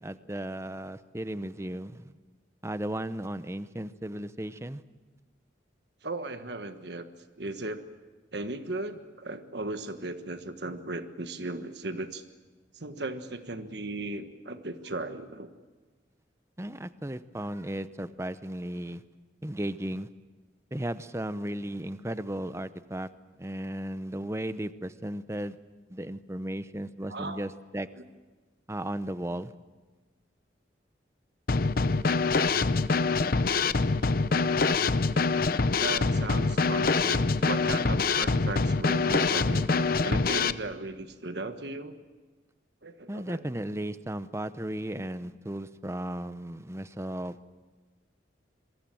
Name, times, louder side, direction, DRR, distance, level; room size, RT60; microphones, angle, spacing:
voice 1, 0.0-2.1 2.6-4.8 16.6-19.0 19.4-20.1 20.7-23.1 23.4-25.5 25.9-27.9 28.7-29.5 43.1-47.3, right 1 dB, 15° right, 13 dB, 0.7 m, -35 dB
voice 2, 6.0-7.1 7.4-7.8 8.3-12.2 12.7-15.5 27.1-27.4 27.9-28.0 35.8-41.9 42.8-43.4, right 2 dB, 65° right, 8 dB, 1.4 m, -36 dB
Drum kit / Snare drum, 31.5-40.5, left 4 dB, 50° left, 0.7 m, -25 dB
27.0 x 23.5 x 7.7 m, 1.3 s
head